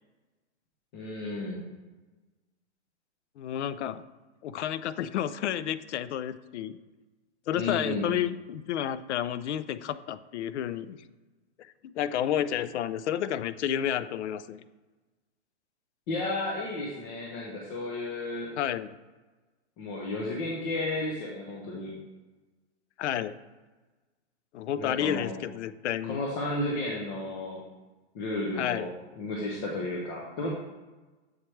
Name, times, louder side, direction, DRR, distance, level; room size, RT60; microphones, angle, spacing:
voice 1, 0.9-1.6 7.5-8.2 16.1-18.5 19.8-21.9 24.8-25.3 26.0-27.6 28.1-28.9 29.2-30.5, left 2 dB, 20° left, -2 dB, 0.5 m, -33 dB
voice 2, 3.4-4.0 4.4-6.7 7.5-11.0 11.9-14.6 18.6-18.9 23.0-23.3 24.5-26.2 28.6-28.9, left 10 dB, 75° left, 15 dB, 0.5 m, -31 dB
7.4 x 4.4 x 3.2 m, 1.2 s
hypercardioid pair, 155°, 35 cm